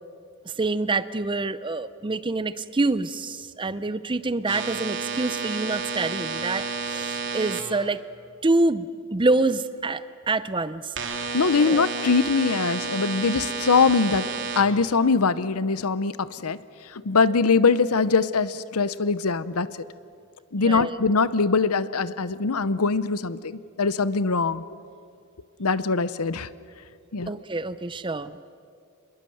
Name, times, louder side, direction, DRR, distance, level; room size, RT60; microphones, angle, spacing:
voice 1, 0.4-8.0 8.4-10.9 11.6-11.8 20.6-21.0 27.3-28.4, right 2 dB, 20° right, 15 dB, 0.6 m, -26 dB
sound 1, 4.5-7.6 11.0-14.6, right 5 dB, 55° right, 2.9 m, -31 dB
voice 2, 11.3-14.3 14.6-16.6 17.0-19.7 20.5-24.6 25.6-26.5 27.1-27.3, left 4 dB, 80° left, 16 dB, 0.8 m, -22 dB
27.0 x 21.5 x 7.9 m, 2.4 s
head